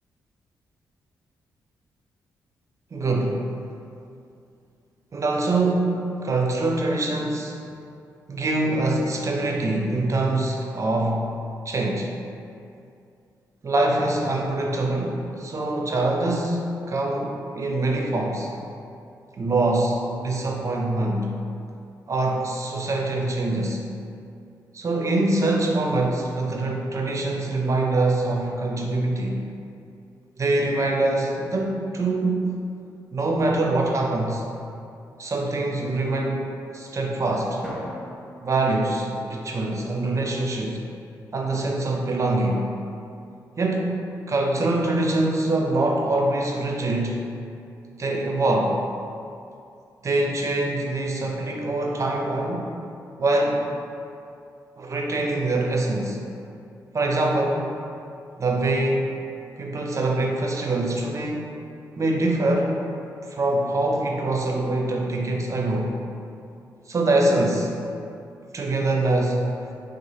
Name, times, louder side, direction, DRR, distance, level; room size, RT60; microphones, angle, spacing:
voice 1, 2.9-3.5 5.1-7.6 8.3-11.3 11.7-12.1 13.6-18.5 19.4-21.3 22.1-23.8 24.7-29.4 30.4-32.5 33.1-34.4 35.2-37.6 38.4-40.8 41.3-42.7 43.6-47.2 48.0-48.8 50.0-52.7 53.2-53.7 54.8-56.2 56.9-57.7 58.4-59.1 59.6-61.5 62.0-62.8 63.2-66.0 66.9-67.8 68.5-69.5, right 2 dB, 40° right, 0 dB, 0.5 m, -24 dB
Drum, 37.6-39.9, equal, 5° left, 0.9 m, -40 dB
3.2 x 2.1 x 4.0 m, 2.5 s
supercardioid pair, 60°, 8 cm